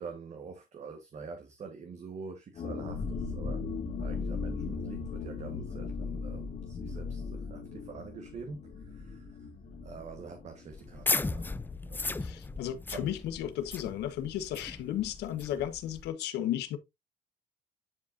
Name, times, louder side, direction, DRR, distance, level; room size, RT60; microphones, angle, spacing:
voice 1, 0.0-3.6 4.0-9.4 9.8-11.5 11.8-12.2 12.9-13.1, right 5 dB, 45° right, 1.4 m, -45 dB
sound 1, 2.6-12.0 12.2-12.3 12.7-13.0, left 4 dB, 45° left, 2.0 m, -38 dB
sound 2, 10.7-16.1, left 3 dB, 10° left, 0.4 m, -36 dB
voice 2, 12.2-16.8, left 11 dB, 80° left, 1.3 m, -34 dB
10.5 x 4.8 x 2.6 m
cardioid pair, 110°, 17 cm